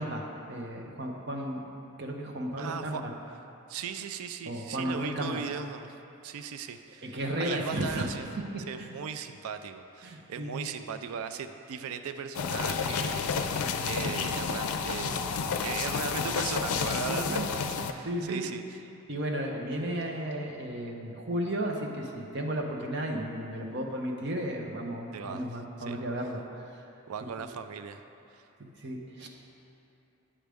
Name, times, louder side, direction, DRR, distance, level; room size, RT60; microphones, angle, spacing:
voice 1, 0.0-1.6 2.0-3.1 4.5-5.4 7.0-8.0 8.8-8.9 10.0-10.7 17.0-17.5 18.0-18.5 19.1-26.4 28.8-29.3, right 1 dB, 50° right, 1 dB, 0.7 m, -34 dB
voice 2, 2.6-3.0 3.7-5.9 6.2-8.3 8.7-18.8 25.1-25.5 25.8-26.0 27.1-28.0 28.3-28.5, right 6 dB, 85° right, 9 dB, 0.4 m, -38 dB
sound 1, 12.3-17.9, left 5 dB, 90° left, 0.4 m, -30 dB
8.7 x 6.2 x 3.5 m, 2.9 s
head